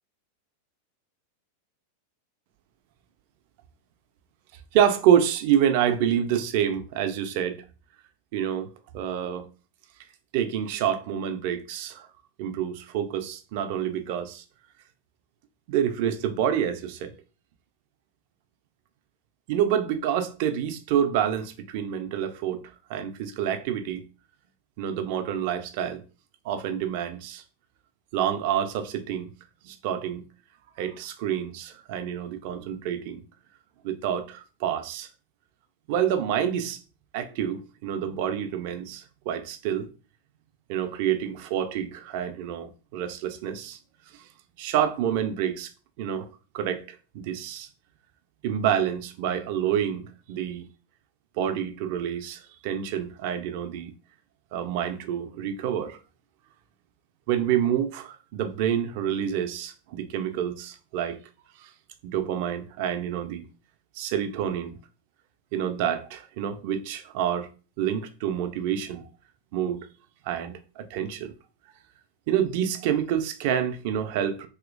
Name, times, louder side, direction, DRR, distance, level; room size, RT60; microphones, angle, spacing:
voice 1, 4.7-7.6 8.3-9.5 10.3-12.1 12.4-14.4 15.7-17.1 19.5-22.6 22.9-24.0 24.8-26.0 26.4-27.4 28.1-29.3 29.6-30.2 30.8-33.2 33.8-35.1 35.9-36.8 37.1-39.9 40.7-43.8 44.6-45.7 46.0-46.3 46.5-47.7 48.4-50.7 51.4-53.9 54.5-56.0 57.3-61.2 61.6-61.7 62.0-63.4 64.0-64.8 65.5-67.5 67.8-69.1 69.5-69.9 70.3-71.3 72.3-74.5, right 9 dB, 45° right, 0.4 m, -27 dB
3.0 x 2.8 x 2.5 m
figure-of-eight pair, 90°, 0 cm